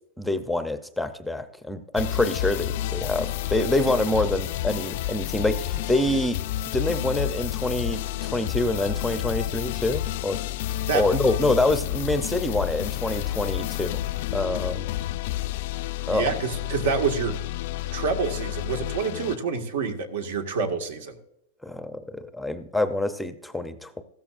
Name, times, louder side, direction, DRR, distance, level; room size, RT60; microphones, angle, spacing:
voice 1, 0.2-6.4 6.7-10.4 10.9-14.0 14.3-14.9 16.1-16.3 21.6-24.0, left 2 dB, ahead, 9 dB, 0.5 m, -26 dB
sound 1, 2.0-19.4, left 14 dB, 55° left, 0.3 m, -30 dB
voice 2, 16.1-17.4 17.9-21.2, right 5 dB, 85° right, 4 dB, 1.7 m, -27 dB
15.5 x 13.0 x 2.5 m, 0.79 s
supercardioid pair, 160°, 0 cm